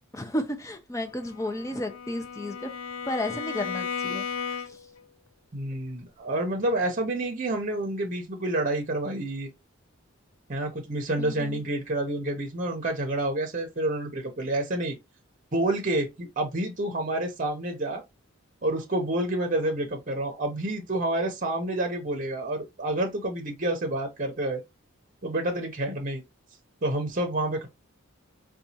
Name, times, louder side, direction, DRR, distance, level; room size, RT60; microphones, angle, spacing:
voice 1, 0.1-2.7 3.0-4.8 11.2-11.6, left 1 dB, 15° left, 0.5 m, -33 dB
Bowed string instrument, 1.2-5.0, left 6 dB, 80° left, 0.5 m, -35 dB
voice 2, 5.5-9.5 10.5-14.9 15.5-18.0 18.6-24.6 25.2-26.2 26.8-27.7, right 1 dB, 40° right, 0.7 m, -28 dB
4.0 x 2.3 x 2.7 m
head